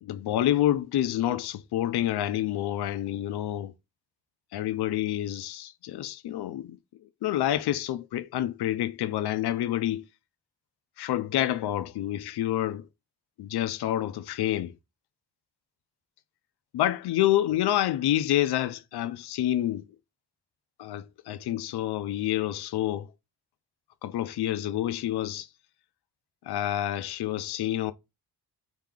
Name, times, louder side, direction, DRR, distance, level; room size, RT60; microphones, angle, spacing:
voice 1, 0.0-3.7 4.5-6.8 7.2-10.0 11.0-12.9 13.4-14.7 16.7-19.8 20.8-23.1 24.0-25.5 26.5-27.9, left 13 dB, 70° left, 0.5 m, -28 dB
3.4 x 2.8 x 3.6 m
cardioid pair, 110°, 40 cm